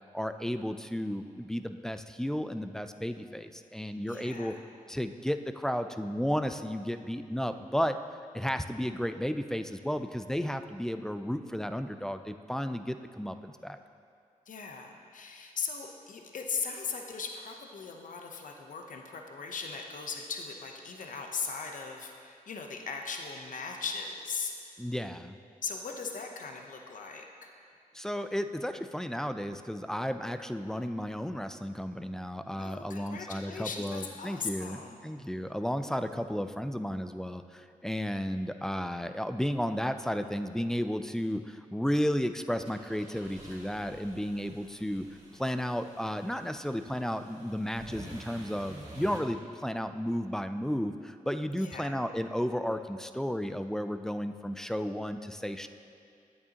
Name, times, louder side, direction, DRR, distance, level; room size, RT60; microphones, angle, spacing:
voice 1, 0.1-4.5 4.9-8.0 8.3-13.8 24.8-25.4 27.9-45.0 45.3-55.7, equal, 5° left, 9 dB, 0.4 m, -33 dB
voice 2, 4.1-4.6 14.5-24.5 25.6-27.5 32.5-35.1 51.6-51.9, left 5 dB, 65° left, 2 dB, 0.8 m, -39 dB
sound 1, 42.6-49.2, right 1 dB, 50° right, 1.9 m, -50 dB
9.4 x 8.2 x 2.9 m, 2.3 s
cardioid pair, 60°, 15 cm